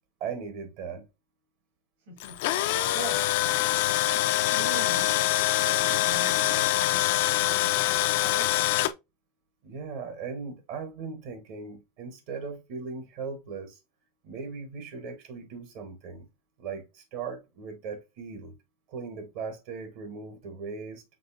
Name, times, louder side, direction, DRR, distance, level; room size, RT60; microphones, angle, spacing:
voice 1, 0.2-1.1 9.6-13.8 14.2-16.3 16.6-18.5 18.9-21.0, right 5 dB, 60° right, 1.2 m, -38 dB
voice 2, 2.1-3.3 4.0-8.8, right 3 dB, 75° right, 2.7 m, -42 dB
Tools, 2.2-8.9, left 15 dB, 70° left, 0.4 m, -25 dB
5.3 x 3.3 x 2.5 m
supercardioid pair, 135°, 0 cm